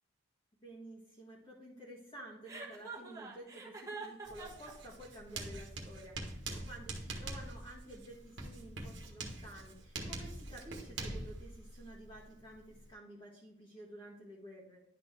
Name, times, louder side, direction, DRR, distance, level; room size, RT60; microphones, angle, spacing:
voice 1, 0.6-14.8, right 1 dB, 25° left, -6 dB, 1.7 m, -52 dB
Chuckle chortle, 2.5-4.7, right 4 dB, 15° right, 1.4 m, -45 dB
Writing, 4.2-12.9, right 2 dB, 60° right, 1.4 m, -44 dB
11.0 x 4.2 x 3.2 m, 0.78 s
head